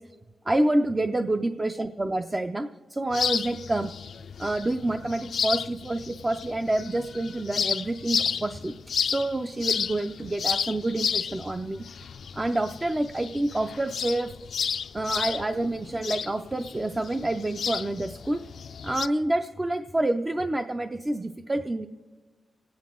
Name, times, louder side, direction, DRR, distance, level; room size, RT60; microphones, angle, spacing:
voice 1, 0.5-3.9 4.4-8.8 9.0-11.8 12.3-14.3 14.9-18.4 18.8-21.9, right 1 dB, 20° right, 6 dB, 0.4 m, -28 dB
sound 1, 3.1-19.1, left 7 dB, 75° left, 0.4 m, -32 dB
27.5 x 9.5 x 3.7 m, 1.4 s
wide cardioid pair, 155°, 0 cm